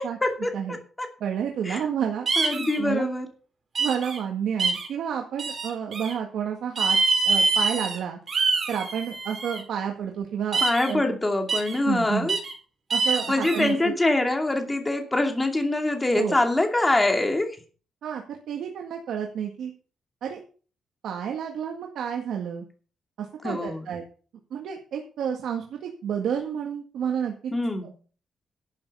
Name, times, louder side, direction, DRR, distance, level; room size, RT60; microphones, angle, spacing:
voice 1, 0.0-1.1 1.6-1.9 2.4-3.3 10.6-12.4 13.0-17.6 23.4-23.9 27.5-27.9, left 2 dB, 15° left, 4 dB, 2.6 m, -25 dB
voice 2, 1.2-2.3 2.8-3.1 3.8-7.0 7.2-8.2 8.7-10.6 10.9-11.0 11.8-12.3 12.9-13.9 16.2-16.3 18.0-19.7 20.2-20.4 21.0-22.6 23.2-24.0 24.5-27.5, right 8 dB, 90° right, 2 dB, 1.9 m, -30 dB
sound 1, 2.3-2.8 3.7-4.2 4.6-4.9 5.4-6.1 6.8-8.0 8.3-9.6 10.5-10.9 11.5-11.8 12.3-12.5 12.9-13.7, right 4 dB, 45° right, 4.2 m, -25 dB
12.0 x 8.6 x 5.6 m, 0.40 s
cardioid pair, 125°, 0 cm